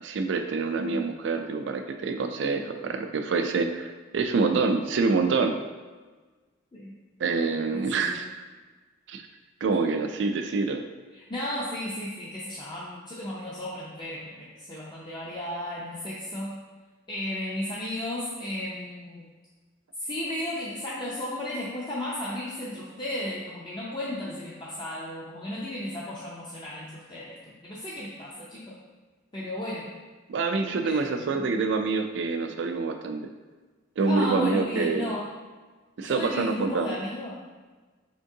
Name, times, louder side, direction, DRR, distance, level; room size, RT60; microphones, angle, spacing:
voice 1, 0.0-5.6 7.2-8.3 9.1-9.2 9.6-10.8 30.3-33.3 34.0-35.1 36.0-37.0, right 4 dB, 65° right, 6 dB, 0.4 m, -26 dB
voice 2, 7.7-8.2 11.1-16.6 17.1-19.3 20.0-28.8 29.3-29.9 30.8-31.5 34.1-35.3 36.0-37.4, left 1 dB, 25° left, -7 dB, 0.5 m, -34 dB
4.4 x 3.6 x 2.7 m, 1.3 s
head